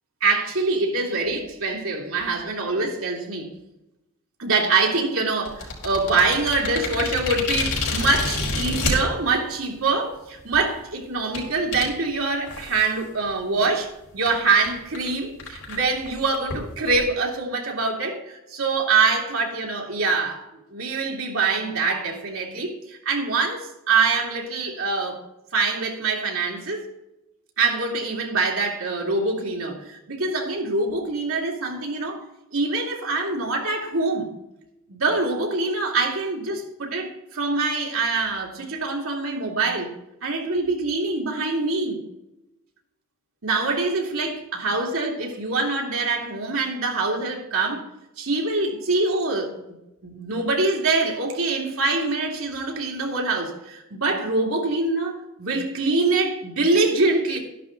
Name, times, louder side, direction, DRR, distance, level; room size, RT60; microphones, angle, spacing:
voice 1, 0.2-3.5 4.4-20.4 20.7-25.2 25.5-26.9 27.6-32.2 32.5-34.3 34.9-39.9 40.2-42.0 43.4-47.9 48.2-49.6 50.0-57.4, right 3 dB, 75° right, 0 dB, 2.7 m, -24 dB
sound 1, 5.4-8.9 9.7-9.8 10.4-10.6 11.3-11.4 11.7-11.9 12.5-12.9 13.3-13.4 13.7-13.8 14.3-14.4 14.6-14.7 14.9-15.1 15.4-17.0, left 3 dB, 85° left, 4.5 m, -28 dB
12.5 x 11.0 x 3.9 m, 0.91 s
head